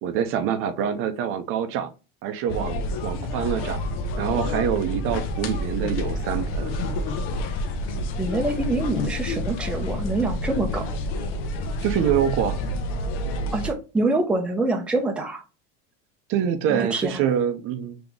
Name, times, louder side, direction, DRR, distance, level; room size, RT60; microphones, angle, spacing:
voice 1, 0.0-1.9 2.2-3.8 4.2-6.8 11.8-12.6 16.3-18.0, right 9 dB, 45° right, 10 dB, 0.6 m, -25 dB
sound 1, 2.5-13.7, left 1 dB, 70° left, 0.9 m, -28 dB
voice 2, 8.2-10.9 13.5-15.4 16.7-17.2, right 2 dB, 5° right, 2 dB, 0.6 m, -25 dB
3.8 x 2.9 x 3.5 m, 0.31 s
supercardioid pair, 145°, 30 cm